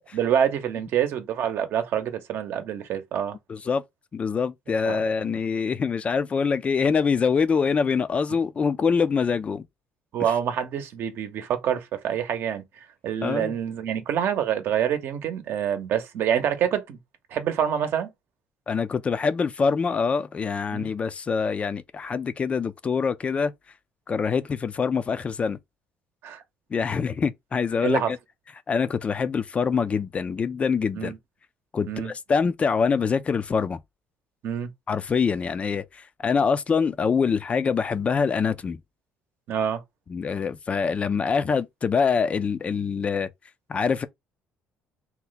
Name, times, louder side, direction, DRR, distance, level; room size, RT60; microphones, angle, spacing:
voice 1, 0.1-3.4 4.8-5.4 10.1-12.6 13.0-17.0 17.3-18.1 20.7-20.9 26.2-26.4 27.8-28.1 30.9-31.2 31.9-32.1 34.4-34.7 39.5-39.8, right 9 dB, 65° right, 0.8 m, -26 dB
voice 2, 3.5-3.8 4.1-9.6 13.2-13.5 18.7-23.5 24.1-25.6 26.7-28.2 28.7-31.1 31.7-33.8 34.9-38.8 40.1-43.3 43.7-44.1, left 5 dB, 30° left, 0.3 m, -25 dB
2.8 x 2.1 x 3.9 m
cardioid pair, 110°, 4 cm